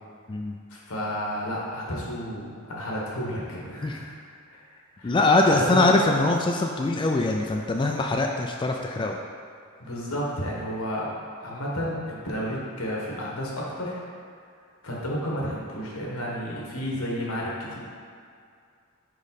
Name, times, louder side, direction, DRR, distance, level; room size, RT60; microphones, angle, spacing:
voice 1, 0.7-4.2 4.5-4.6 5.0-5.2 5.4-5.8 9.8-11.1 11.4-14.0 14.8-17.8, equal, 90° left, -4 dB, 1.5 m, -31 dB
voice 2, 5.0-9.2, left 2 dB, 25° left, 1 dB, 0.3 m, -22 dB
5.2 x 4.9 x 4.1 m, 2.3 s
head